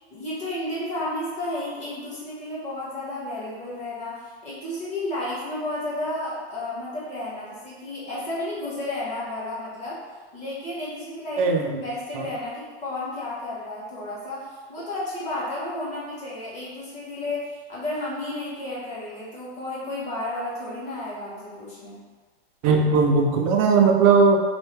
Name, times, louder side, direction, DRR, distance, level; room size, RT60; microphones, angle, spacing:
voice 1, 0.1-10.0 10.3-22.0, left 1 dB, 20° left, -9 dB, 1.2 m, -32 dB
voice 2, 11.4-11.8 12.1-12.3 22.6-24.4, right 4 dB, 35° right, 2 dB, 0.4 m, -18 dB
2.6 x 2.2 x 3.3 m, 1.4 s
hypercardioid pair, 130°, 32 cm